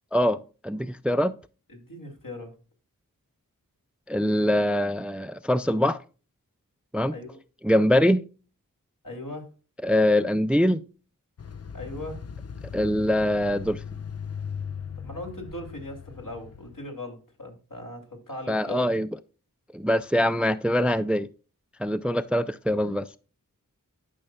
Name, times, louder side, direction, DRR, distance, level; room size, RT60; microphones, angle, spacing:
voice 1, 0.6-1.3 4.1-6.0 6.9-7.1 7.6-8.2 9.8-10.8 12.7-13.8 18.5-19.1 19.7-21.3 21.8-23.1, left 1 dB, 5° right, 0.4 m, -23 dB
voice 2, 1.7-2.5 7.1-7.4 9.0-9.5 11.7-12.2 15.0-18.9, left 2 dB, 65° left, 2.8 m, -39 dB
sound 1, 11.4-16.9, left 7 dB, 45° left, 0.5 m, -38 dB
12.0 x 5.5 x 2.2 m
wide cardioid pair, 40°, 34 cm